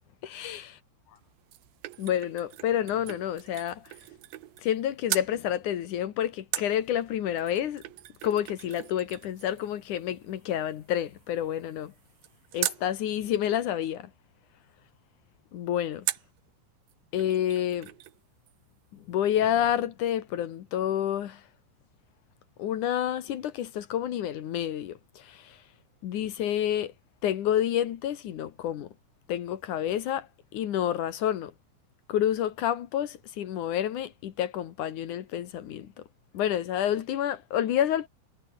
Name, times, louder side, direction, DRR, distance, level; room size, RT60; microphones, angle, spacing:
voice 1, 0.2-0.7 2.0-3.9 4.6-7.8 8.2-11.9 12.5-14.1 15.5-16.1 17.1-17.9 18.9-21.4 22.6-25.6 26.0-26.9 27.2-28.9 29.3-31.5 32.1-36.0 36.3-38.1, left 10 dB, 60° left, 2.2 m, -29 dB
sound 1, 1.2-4.8 5.1-5.3 6.5-12.9 16.1-16.4 16.9-17.0 17.2-18.2 18.5-18.6, right 15 dB, 70° right, 2.4 m, -39 dB
omnidirectional pair, 5.4 m